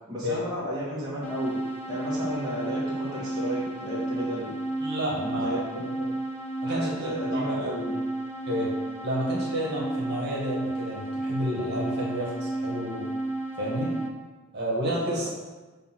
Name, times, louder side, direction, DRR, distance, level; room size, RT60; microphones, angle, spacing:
voice 1, 0.1-1.6 1.9-4.5 5.4-6.2 6.7-8.0, equal, 20° right, -9 dB, 1.8 m, -33 dB
sound 1, 1.2-14.1, right 2 dB, 75° left, 0.8 m, -32 dB
voice 2, 4.8-5.6 6.6-7.7 8.5-8.7 9.0-13.1 13.6-13.9 14.5-15.3, equal, 45° right, -5 dB, 1.9 m, -30 dB
7.0 x 3.6 x 6.2 m, 1.2 s
head